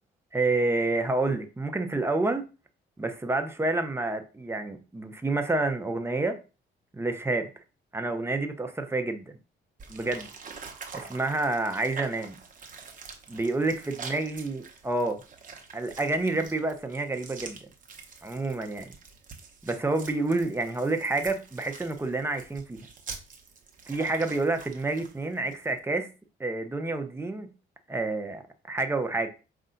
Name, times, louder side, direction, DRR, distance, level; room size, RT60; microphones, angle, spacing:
voice 1, 0.3-2.5 3.0-6.4 6.9-7.5 7.9-9.4 9.9-10.3 10.9-12.4 13.3-15.2 15.7-17.6 18.2-18.9 19.6-22.8 23.9-26.1 26.4-27.5 27.9-28.4 28.7-29.3, right 2 dB, 10° right, 0.7 m, -28 dB
sound 1, 9.8-25.8, right 5 dB, 40° right, 1.0 m, -46 dB
5.3 x 2.5 x 3.9 m
cardioid pair, 90°, 20 cm